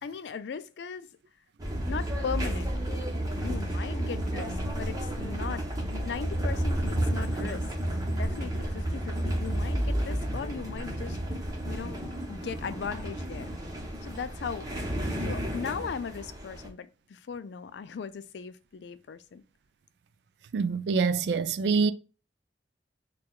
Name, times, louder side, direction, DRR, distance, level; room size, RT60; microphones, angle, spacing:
voice 1, 0.0-1.2 1.8-2.7 3.3-5.7 5.9-7.7 8.1-11.2 11.6-12.0 12.3-13.5 14.0-14.7 15.2-19.4, left 6 dB, 75° left, 0.4 m, -38 dB
sound 1, 1.6-16.7, right 1 dB, 20° right, 0.9 m, -31 dB
voice 2, 20.5-21.9, right 5 dB, 70° right, 0.3 m, -25 dB
4.5 x 2.3 x 2.3 m
head